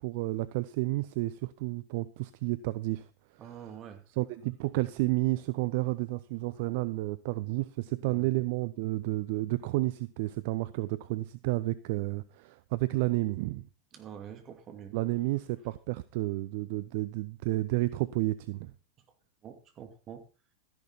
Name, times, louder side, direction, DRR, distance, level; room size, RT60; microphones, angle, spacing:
voice 1, 0.0-3.7 4.1-13.7 14.9-18.7, right 19 dB, 50° right, 0.6 m, -31 dB
voice 2, 3.4-4.0 8.1-8.3 13.9-15.0 19.4-20.2, right 8 dB, 30° right, 2.6 m, -46 dB
13.0 x 10.5 x 4.2 m
figure-of-eight pair, 90°, 0 cm